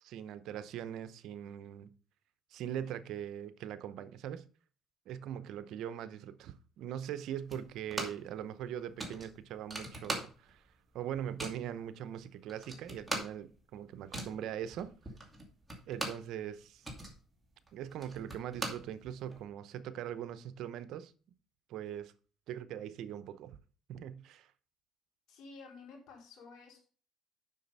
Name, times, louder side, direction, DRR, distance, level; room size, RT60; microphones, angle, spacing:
voice 1, 0.0-1.9 2.5-4.5 5.1-10.7 10.9-14.9 15.9-16.9 17.7-21.1 21.7-22.1 22.5-23.6 23.9-24.5, right 10 dB, 75° right, 0.7 m, -41 dB
sound 1, 7.5-8.3 8.6-8.7 9.0-10.7 10.9-11.7 12.2-12.3 12.5-16.3 16.6-19.4, right 2 dB, 15° right, 2.4 m, -41 dB
voice 2, 25.3-26.8, left 4 dB, 70° left, 4.4 m, -52 dB
7.5 x 6.0 x 5.4 m
cardioid pair, 95°, 0 cm